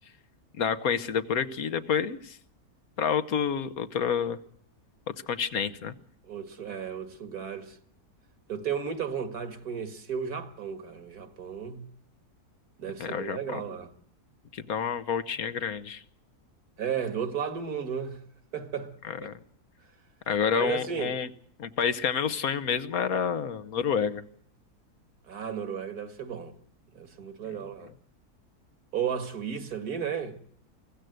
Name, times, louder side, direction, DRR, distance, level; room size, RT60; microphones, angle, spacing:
voice 1, 0.6-2.4 3.0-4.4 5.1-5.9 13.0-13.6 14.5-16.0 19.1-19.3 20.3-21.3 21.6-24.2, left 7 dB, 70° left, 1.5 m, -29 dB
voice 2, 6.2-7.8 8.5-11.8 12.8-13.9 16.8-18.2 18.5-18.9 19.2-19.3 20.5-21.1 25.3-26.5 26.9-27.9 28.9-30.4, right 7 dB, 75° right, 2.2 m, -34 dB
23.5 x 15.5 x 7.9 m
omnidirectional pair, 1.6 m